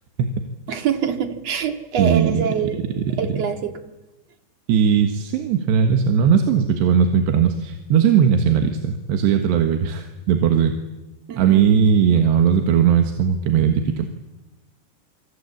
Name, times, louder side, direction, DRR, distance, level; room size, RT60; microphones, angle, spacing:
voice 1, 0.7-2.8 3.2-3.7 11.3-11.7, right 7 dB, 50° right, 7 dB, 2.5 m, -25 dB
voice 2, 2.0-2.5 2.9-3.4 4.7-10.7 11.4-14.1, right 7 dB, 90° right, 6 dB, 3.7 m, -18 dB
27.0 x 26.0 x 8.5 m, 1.0 s
omnidirectional pair, 4.8 m